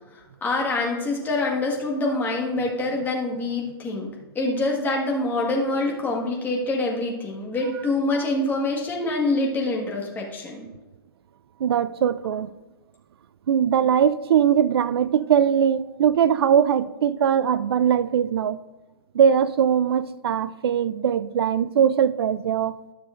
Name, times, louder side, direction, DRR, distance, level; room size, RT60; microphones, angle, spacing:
voice 1, 0.4-10.6, left 2 dB, 15° left, 1.6 m, -25 dB
voice 2, 11.6-12.5 13.5-18.6 19.1-22.8, right 8 dB, 75° right, 0.4 m, -21 dB
12.5 x 6.7 x 2.6 m
hypercardioid pair, 130°, 13 cm